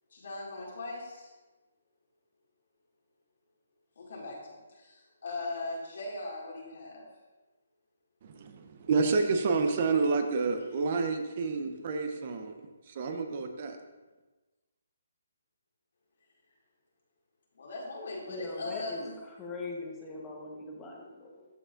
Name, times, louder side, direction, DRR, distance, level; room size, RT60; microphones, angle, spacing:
voice 1, 0.1-1.3 4.0-7.1 17.5-19.1, left 2 dB, 65° left, -3 dB, 2.2 m, -39 dB
voice 2, 8.2-12.7 13.0-13.8, right 4 dB, 40° right, 6 dB, 0.6 m, -29 dB
voice 3, 18.2-21.5, left 3 dB, 15° left, -1 dB, 1.1 m, -41 dB
13.5 x 4.9 x 2.5 m, 1.2 s
hypercardioid pair, 165°, 0 cm